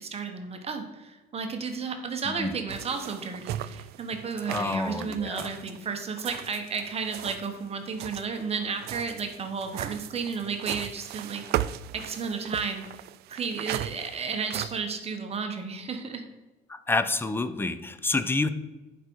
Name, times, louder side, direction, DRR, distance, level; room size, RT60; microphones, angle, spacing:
voice 1, 0.0-11.4 11.9-12.8 13.3-16.2, right 5 dB, 35° right, 5 dB, 1.2 m, -33 dB
sound 1, 2.7-7.5 7.9-14.8, right 13 dB, 70° right, 0.4 m, -37 dB
voice 2, 4.5-5.5 16.7-18.5, left 3 dB, 15° left, 12 dB, 0.6 m, -28 dB
11.0 x 5.3 x 4.6 m, 1.2 s
cardioid pair, 110°, 17 cm